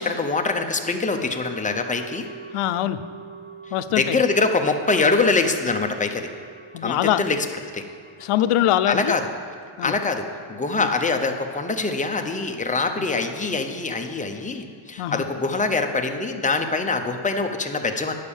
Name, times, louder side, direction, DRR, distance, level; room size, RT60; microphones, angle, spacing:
voice 1, 0.0-2.3 4.0-6.3 6.8-7.5 7.7-7.9 8.9-9.2 9.8-18.1, left 3 dB, 15° left, 5 dB, 0.6 m, -24 dB
sound 1, 1.4-11.6 11.9-12.0, right 5 dB, 65° right, 1.3 m, -44 dB
voice 2, 2.5-3.0 3.7-4.2 6.7-7.2 8.2-9.1 9.8-9.9 10.8-10.9 15.0-15.2, left 12 dB, 85° left, 12 dB, 0.6 m, -23 dB
8.9 x 6.7 x 7.1 m, 2.3 s
wide cardioid pair, 150°, 50 cm